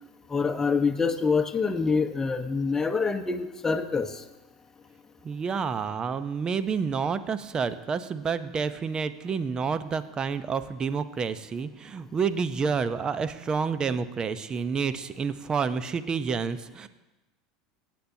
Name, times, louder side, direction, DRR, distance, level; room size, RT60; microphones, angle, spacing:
voice 1, 0.3-4.1, left 5 dB, 20° left, 6 dB, 1.1 m, -26 dB
voice 2, 5.2-16.9, right 5 dB, 30° right, 13 dB, 0.8 m, -29 dB
23.0 x 9.3 x 2.8 m, 1.1 s
hypercardioid pair, 80°, 3 cm